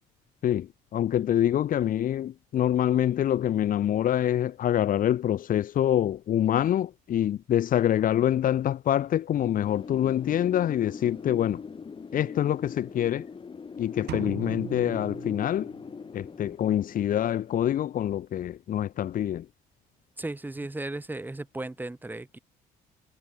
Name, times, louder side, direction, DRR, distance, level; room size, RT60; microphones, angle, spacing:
voice 1, 0.4-11.6 12.1-13.3 13.8-15.7 16.1-19.5, left 11 dB, 55° left, 1.4 m, -26 dB
Wind, 9.6-18.3, left 5 dB, 30° left, 6.4 m, -41 dB
sound 1, 14.1-16.1, right 15 dB, 75° right, 5.9 m, -39 dB
voice 2, 20.2-22.4, right 2 dB, 10° right, 3.1 m, -35 dB
cardioid pair, 110°, 17 cm